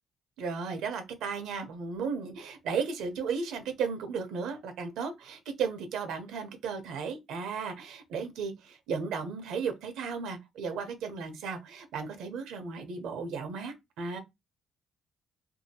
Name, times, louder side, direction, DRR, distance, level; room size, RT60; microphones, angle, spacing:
voice 1, 0.4-14.2, right 5 dB, 85° right, 0.7 m, -35 dB
2.7 x 2.7 x 2.7 m
cardioid pair, 90°, 0 cm